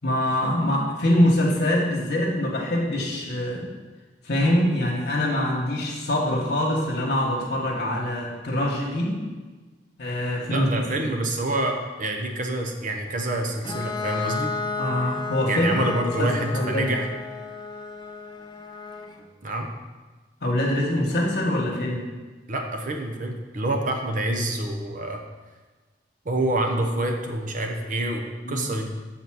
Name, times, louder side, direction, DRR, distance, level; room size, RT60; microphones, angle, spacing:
voice 1, 0.0-3.7 4.2-9.1 10.0-10.7 11.0-11.1 14.8-15.9 16.2-16.9 20.4-22.1 28.4-28.7, left 1 dB, 65° left, -2 dB, 1.2 m, -24 dB
voice 2, 10.5-14.5 15.5-17.1 19.4-19.7 22.5-25.2 26.2-28.9, right 1 dB, 45° right, 3 dB, 0.8 m, -27 dB
Bowed string instrument, 13.6-19.2, left 4 dB, 25° left, 0.6 m, -33 dB
6.8 x 4.0 x 6.1 m, 1.3 s
head